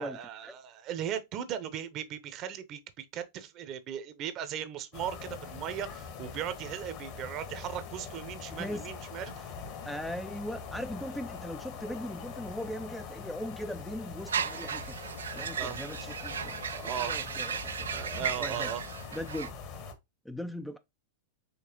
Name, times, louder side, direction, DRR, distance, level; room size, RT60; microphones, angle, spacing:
voice 1, 0.0-9.5 15.6-15.8 16.7-17.2 17.9-18.8, right 9 dB, 40° right, 0.8 m, -38 dB
sound 1, 4.9-19.9, left 5 dB, 50° left, 1.3 m, -43 dB
voice 2, 8.5-8.8 9.8-15.0 15.3-16.6 16.8-18.7 19.1-19.5 20.2-20.8, left 1 dB, 5° left, 0.4 m, -39 dB
sound 2, 14.3-19.5, right 7 dB, 80° right, 0.4 m, -35 dB
5.2 x 3.3 x 2.9 m
hypercardioid pair, 95°, 0 cm